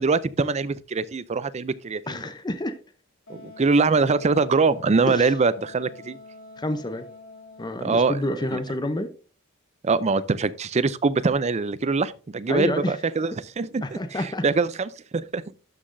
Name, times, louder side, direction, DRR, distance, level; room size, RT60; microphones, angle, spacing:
voice 1, 0.0-2.2 3.3-6.2 7.8-8.2 8.5-8.6 9.8-15.6, right 4 dB, 30° right, 0.4 m, -23 dB
voice 2, 2.1-2.7 5.1-5.3 6.6-7.0 7.6-9.1 12.5-13.0 13.8-14.4, left 1 dB, 20° left, 0.6 m, -28 dB
Wind instrument woodwind instrument, 3.3-8.0, left 4 dB, 75° left, 2.5 m, -46 dB
12.5 x 5.8 x 2.6 m
head